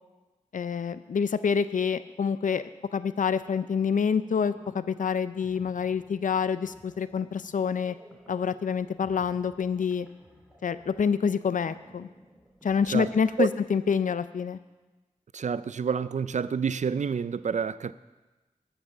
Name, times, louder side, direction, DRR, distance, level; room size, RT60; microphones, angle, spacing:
voice 1, 0.5-2.6 2.9-8.0 8.3-10.1 10.6-12.1 12.6-14.6, left 6 dB, 85° left, 0.4 m, -27 dB
sound 1, 3.5-13.8, equal, ahead, 2.5 m, -55 dB
voice 2, 15.3-17.9, right 6 dB, 65° right, 0.4 m, -28 dB
12.5 x 5.9 x 6.5 m
cardioid pair, 45°, 13 cm